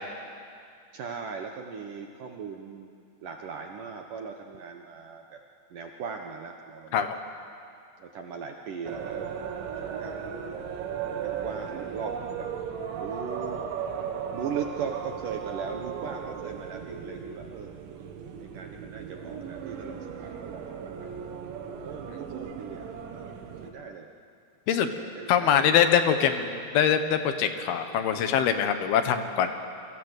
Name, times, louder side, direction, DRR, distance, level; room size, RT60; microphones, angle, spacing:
voice 1, 0.9-2.9 3.2-5.4 5.7-7.1 8.0-9.5 9.8-10.4 11.1-12.5 12.9-13.7 14.3-17.7 18.4-21.4 21.7-23.3 23.6-24.1 24.7-25.8 26.1-26.3, right 6 dB, 65° right, 3 dB, 2.2 m, -39 dB
sound 1, 8.9-23.7, right 7 dB, 80° right, 4.1 m, -36 dB
voice 2, 25.3-29.5, left 8 dB, 65° left, 8 dB, 2.9 m, -23 dB
28.5 x 24.5 x 8.2 m, 2.3 s
omnidirectional pair, 5.2 m